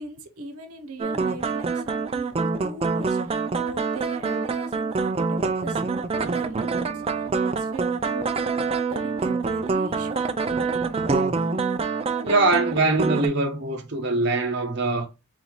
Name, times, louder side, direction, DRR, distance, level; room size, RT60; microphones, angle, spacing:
voice 1, 0.0-8.6 8.9-10.7, right 2 dB, 90° right, 0.8 m, -39 dB
sound 1, 1.0-13.3, right 4 dB, 25° right, 0.3 m, -26 dB
voice 2, 12.2-15.1, right 2 dB, 50° right, 0.8 m, -22 dB
4.0 x 4.0 x 3.0 m
head